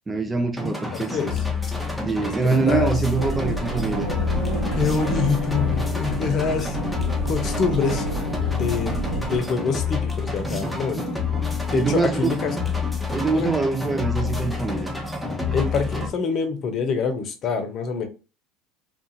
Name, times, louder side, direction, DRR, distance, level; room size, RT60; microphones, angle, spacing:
voice 1, 0.1-1.2 2.1-4.1 11.7-12.4 13.1-14.9, right 4 dB, 20° right, 0.3 m, -24 dB
sound 1, 0.6-16.1, left 4 dB, ahead, 0.7 m, -28 dB
voice 2, 0.7-1.3 2.2-2.9 4.7-6.8 7.3-8.1 8.5-11.1 11.7-12.6 13.3-13.5 15.5-18.1, left 5 dB, 45° left, 0.7 m, -26 dB
sound 2, 3.2-9.4, right 2 dB, 65° right, 1.1 m, -29 dB
2.4 x 2.4 x 2.8 m
hypercardioid pair, 80°, 0 cm